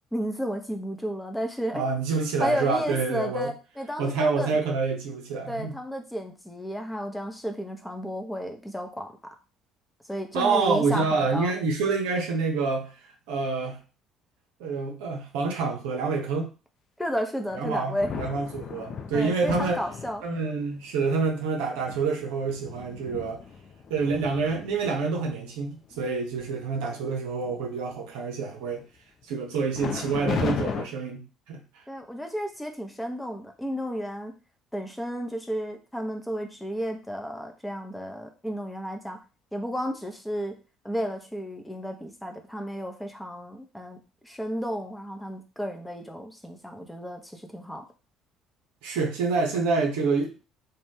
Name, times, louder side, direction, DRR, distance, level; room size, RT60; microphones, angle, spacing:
voice 1, 0.1-1.8 2.4-4.6 5.5-9.1 10.0-11.5 17.0-18.1 19.1-20.2 31.9-34.3 34.7-39.2 39.5-40.5 40.8-47.9, equal, 5° left, 3 dB, 0.7 m, -32 dB
voice 2, 1.7-3.5 4.0-5.8 10.3-13.8 14.6-16.5 17.6-19.8 20.2-23.4 23.9-28.8 29.3-31.6 48.8-50.3, right 4 dB, 70° right, 2 dB, 0.6 m, -27 dB
sound 1, 17.5-20.5 21.2-21.3 21.8-25.4 25.9-26.1 26.4-26.8 27.2-27.9 29.8-30.9, left 6 dB, 50° left, 0.4 m, -35 dB
2.6 x 2.2 x 3.3 m, 0.33 s
hypercardioid pair, 55°, 0 cm